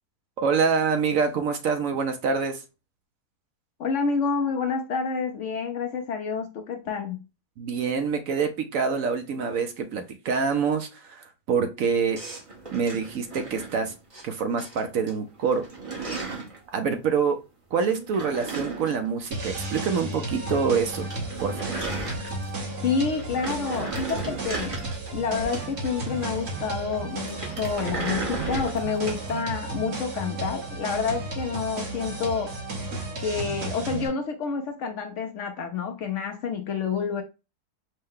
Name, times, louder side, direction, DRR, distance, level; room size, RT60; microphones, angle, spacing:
voice 1, 0.4-2.6 7.6-12.2 12.7-13.9 14.2-15.7 16.7-17.4 17.7-21.1 21.4-21.6, right 5 dB, 65° right, 0.9 m, -26 dB
voice 2, 3.8-7.2 22.8-24.8 25.1-32.6 33.2-37.2, left 5 dB, 65° left, 0.8 m, -28 dB
sound 1, 12.1-14.2 14.6-15.1 15.4-16.6 17.9-20.0 20.3-20.4 20.7-20.8 20.9-22.7 23.1-26.2 27.2-29.3, right 3 dB, 30° right, 0.8 m, -35 dB
sound 2, 19.3-34.1, right 3 dB, 45° right, 1.3 m, -33 dB
5.3 x 2.1 x 3.6 m
omnidirectional pair, 1.6 m